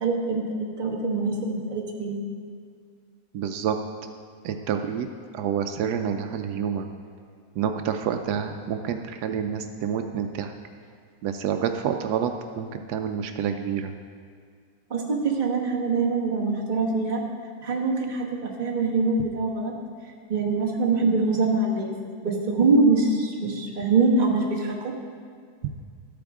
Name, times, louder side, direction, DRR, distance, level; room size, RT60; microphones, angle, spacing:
voice 1, 0.0-2.2 14.9-17.2 17.6-19.7 20.3-24.9, right 3 dB, 30° right, -2 dB, 1.2 m, -24 dB
voice 2, 3.3-3.8 4.4-5.1 5.3-6.9 7.6-10.5 11.2-12.3 12.6-13.9, right 8 dB, 80° right, 6 dB, 1.1 m, -28 dB
13.0 x 8.6 x 3.6 m, 2.1 s
omnidirectional pair, 1.7 m